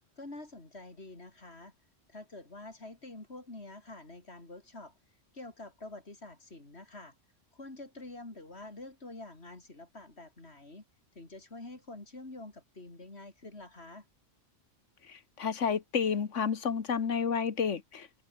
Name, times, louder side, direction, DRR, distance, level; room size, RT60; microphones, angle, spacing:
voice 1, 0.2-1.7 2.1-4.9 5.3-7.1 7.5-10.8 11.1-14.1, left 2 dB, 55° left, 4.3 m, -47 dB
voice 2, 15.1-18.2, left 6 dB, 75° left, 1.8 m, -31 dB
omnidirectional pair, 1.3 m